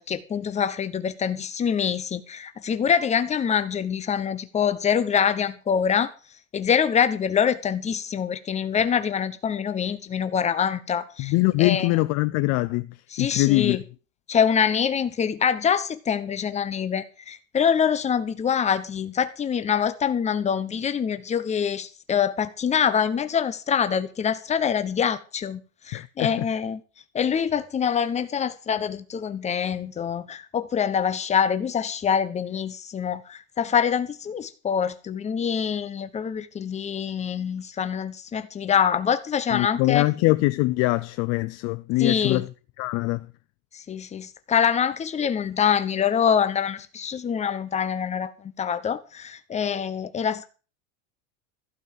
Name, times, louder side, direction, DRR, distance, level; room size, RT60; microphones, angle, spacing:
voice 1, 0.0-6.1 6.5-11.3 11.6-12.0 13.1-13.8 14.3-26.8 27.1-40.1 42.0-42.5 43.7-50.5, left 7 dB, 15° left, 1.1 m, -25 dB
voice 2, 11.2-13.8 25.9-26.5 39.5-42.5 42.8-43.3, left 21 dB, 40° left, 0.6 m, -23 dB
15.5 x 5.5 x 9.2 m
supercardioid pair, 155°, 40 cm